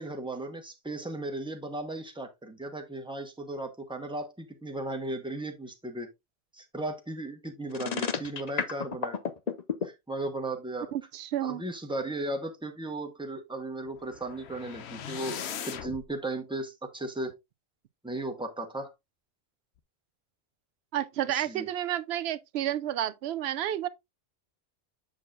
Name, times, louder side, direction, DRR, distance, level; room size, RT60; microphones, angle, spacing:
voice 1, 0.0-6.1 6.5-9.2 9.8-10.9 11.4-15.4 15.7-17.3 18.0-18.9 21.3-21.7, right 2 dB, 5° right, 1.1 m, -36 dB
sound 1, 7.7-9.9, left 6 dB, 45° left, 0.8 m, -30 dB
voice 2, 10.9-11.6 20.9-23.9, right 11 dB, 75° right, 0.8 m, -31 dB
sound 2, 13.9-16.1, left 8 dB, 80° left, 0.9 m, -39 dB
7.4 x 6.4 x 2.5 m
omnidirectional pair, 1.1 m